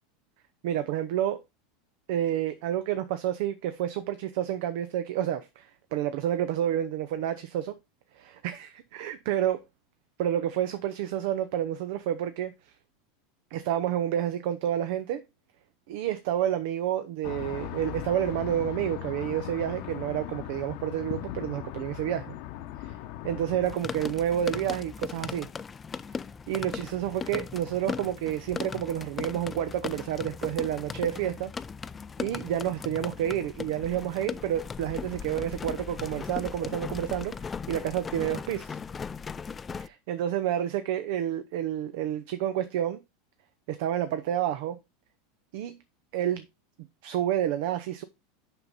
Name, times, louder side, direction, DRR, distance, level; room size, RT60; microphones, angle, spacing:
voice 1, 0.6-1.4 2.1-7.8 8.2-9.6 10.2-12.5 13.5-15.2 15.9-22.3 22.8-22.9 23.2-25.5 26.5-31.5 32.2-38.8 39.8-43.0 43.7-44.8 45.5-45.8 46.1-46.5 47.0-48.0, right 11 dB, 65° right, 0.7 m, -29 dB
sound 1, 17.2-23.7, left 12 dB, 60° left, 0.9 m, -38 dB
sound 2, 23.6-39.9, left 5 dB, 25° left, 0.4 m, -38 dB
6.7 x 5.6 x 4.0 m
hypercardioid pair, 90°, 0 cm